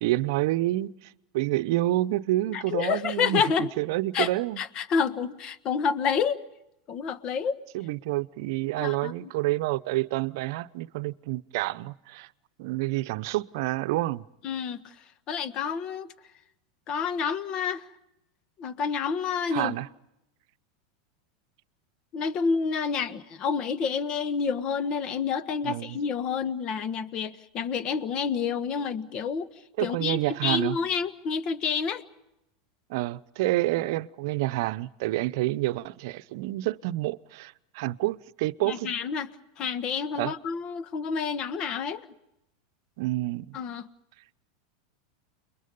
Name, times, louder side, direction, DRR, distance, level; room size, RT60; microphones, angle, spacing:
voice 1, 0.0-4.6 7.7-12.3 12.6-14.2 19.5-19.9 25.6-26.0 29.8-30.8 32.9-38.9 40.2-40.4 43.0-43.6, right 17 dB, 65° right, 0.8 m, -28 dB
voice 2, 2.5-3.7 4.1-4.3 4.6-6.4 6.9-7.6 8.8-9.3 14.4-14.8 15.3-16.1 16.9-17.8 18.6-19.7 22.1-29.5 29.8-32.0 38.6-39.3 39.6-42.1 43.5-43.9, left 6 dB, 40° left, 1.5 m, -29 dB
30.0 x 22.5 x 5.4 m
hypercardioid pair, 105°, 2 cm